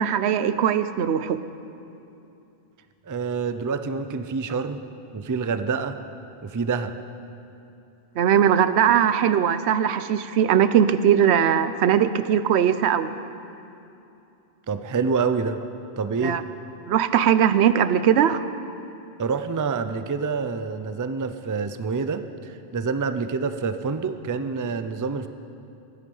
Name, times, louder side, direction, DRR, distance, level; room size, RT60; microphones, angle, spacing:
voice 1, 0.0-1.4 8.2-13.1 16.2-16.4 16.9-18.4, right 9 dB, 80° right, 12 dB, 0.9 m, -20 dB
voice 2, 3.1-4.8 5.1-6.0 6.4-6.9 14.7-15.6 16.0-16.4 19.2-25.3, right 5 dB, 30° right, 10 dB, 0.4 m, -27 dB
21.5 x 9.8 x 5.5 m, 2.8 s
omnidirectional pair, 1.1 m